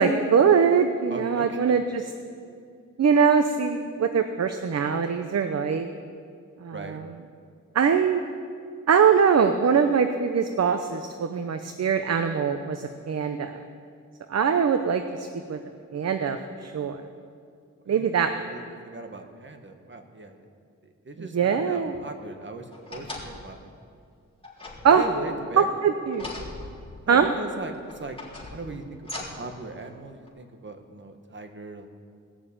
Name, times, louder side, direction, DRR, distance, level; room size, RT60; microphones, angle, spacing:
voice 1, 0.0-2.0 3.0-5.9 6.6-7.0 7.7-8.2 8.9-13.6 14.3-15.6 15.9-17.0 17.9-18.4 21.3-21.9 24.8-25.0 25.6-26.3 27.1-27.3, right 6 dB, 55° right, 8 dB, 0.8 m, -22 dB
voice 2, 1.1-1.8 6.7-7.0 17.9-18.1 18.4-20.5 20.8-23.8 24.8-25.7 27.1-28.2 28.5-29.0 29.3-31.9, right 2 dB, 40° right, 5 dB, 1.5 m, -39 dB
sound 1, 22.7-23.6 24.4-25.4 26.1-27.2 27.9-29.5 30.3-30.4, left 2 dB, 15° left, 3.9 m, -40 dB
19.0 x 6.9 x 8.7 m, 2.3 s
cardioid pair, 80°, 30 cm